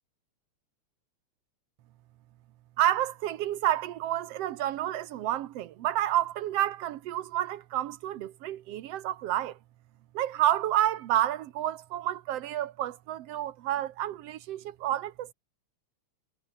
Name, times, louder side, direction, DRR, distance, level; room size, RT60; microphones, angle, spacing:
voice 1, 2.8-9.6 10.1-15.3, right 12 dB, 65° right, 1.7 m, -29 dB
omnidirectional pair, 3.3 m